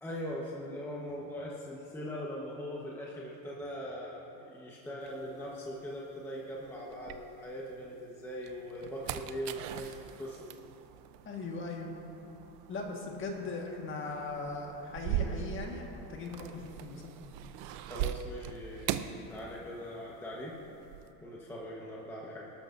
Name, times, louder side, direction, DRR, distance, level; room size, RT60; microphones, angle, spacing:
voice 1, 0.0-10.6 17.8-20.6 21.2-22.5, equal, 5° left, -5 dB, 1.1 m, -41 dB
sound 1, 5.1-7.8 8.3-20.0 20.3-21.1, right 11 dB, 60° right, 0.7 m, -41 dB
voice 2, 11.2-11.9 12.7-17.0, left 3 dB, 25° left, 0 dB, 1.6 m, -39 dB
24.0 x 13.0 x 2.6 m, 2.9 s
cardioid pair, 145°, 45 cm